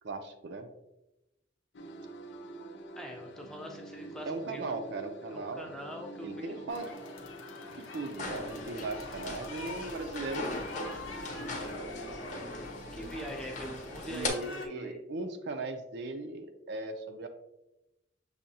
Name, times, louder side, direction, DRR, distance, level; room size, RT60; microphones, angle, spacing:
voice 1, 0.0-0.7 4.3-5.8 6.2-6.9 7.9-10.5 14.1-17.3, right 3 dB, 60° right, 6 dB, 0.4 m, -38 dB
sound 1, 1.7-13.1, right 1 dB, 65° left, 0.4 m, -47 dB
voice 2, 3.0-4.6 5.3-6.7 12.9-15.0, equal, 5° left, 0 dB, 0.5 m, -43 dB
sound 2, 6.7-14.7, left 3 dB, 90° left, 0.8 m, -45 dB
sound 3, 8.2-14.3, left 2 dB, 40° left, 0.8 m, -40 dB
6.4 x 2.7 x 2.7 m, 0.92 s
head